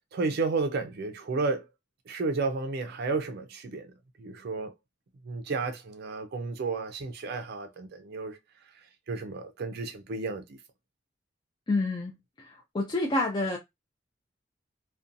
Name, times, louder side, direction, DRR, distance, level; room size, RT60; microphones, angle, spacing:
voice 1, 0.1-1.7 2.1-3.9 4.2-4.7 5.2-8.4 8.7-10.6, right 3 dB, 60° right, 0.4 m, -32 dB
voice 2, 11.7-12.1 12.4-13.6, left 2 dB, 25° left, 0.4 m, -28 dB
2.6 x 2.2 x 2.5 m
head